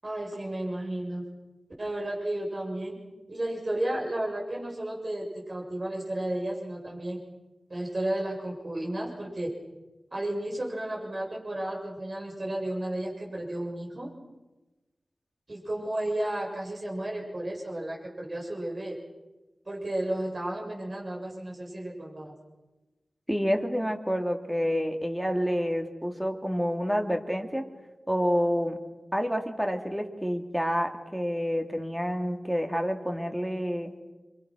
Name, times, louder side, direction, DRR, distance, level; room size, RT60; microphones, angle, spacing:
voice 1, 0.0-1.3 1.8-3.0 3.3-7.2 7.7-9.5 10.1-14.1 15.5-19.0 19.6-22.3, right 1 dB, 45° right, -1 dB, 6.9 m, -33 dB
voice 2, 23.3-27.7 28.1-28.8 29.1-33.9, equal, 5° right, 4 dB, 2.5 m, -28 dB
29.5 x 25.5 x 6.3 m, 1.1 s
wide cardioid pair, 95°, 0 cm